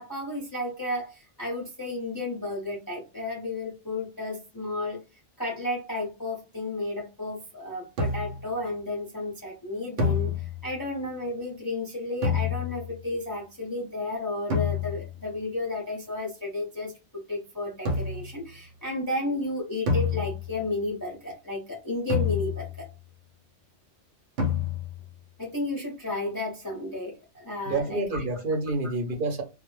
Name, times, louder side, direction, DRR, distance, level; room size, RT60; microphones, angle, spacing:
voice 1, 0.0-5.0 5.4-22.9 25.4-28.2, left 2 dB, 25° left, 0.5 m, -33 dB
sound 1, 8.0-8.5 10.0-10.8 12.2-13.0 14.5-15.2 17.9-18.4 19.9-20.7 22.1-22.9 24.4-25.1, left 5 dB, 75° right, 1.0 m, -28 dB
voice 2, 27.6-29.4, right 2 dB, 50° right, 0.8 m, -28 dB
2.2 x 2.0 x 3.0 m
omnidirectional pair, 1.2 m